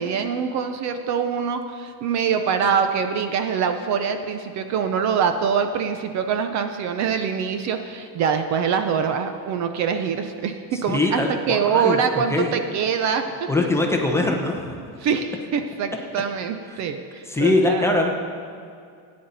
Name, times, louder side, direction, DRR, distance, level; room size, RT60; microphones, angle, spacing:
voice 1, 0.0-13.5 15.0-18.1, right 6 dB, 40° right, 7 dB, 0.6 m, -24 dB
voice 2, 10.9-12.0 12.3-12.5 13.5-14.8 17.3-18.1, left 2 dB, 5° left, 1 dB, 0.7 m, -22 dB
16.5 x 9.6 x 4.0 m, 2.3 s
cardioid pair, 170°, 43 cm